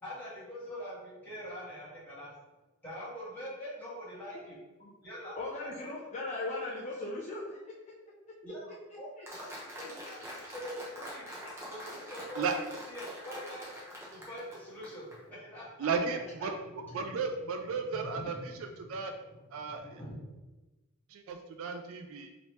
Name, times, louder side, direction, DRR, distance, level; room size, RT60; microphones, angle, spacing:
voice 1, 0.0-2.3 2.8-4.6 5.0-5.9 8.4-11.3 11.7-12.6 12.9-13.7 14.1-15.9 16.4-16.5 16.7-17.3 17.7-20.4, equal, 10° left, -10 dB, 1.4 m, -44 dB
voice 2, 5.4-7.6 9.2-9.3 9.8-9.9, left 2 dB, 30° left, -4 dB, 0.4 m, -38 dB
Applause, 9.3-15.2, equal, 10° right, 0.7 m, -44 dB
voice 3, 15.8-16.6 16.9-19.1 19.5-20.0 21.1-22.3, right 5 dB, 65° right, 5 dB, 0.3 m, -34 dB
3.0 x 2.8 x 3.1 m, 1.1 s
head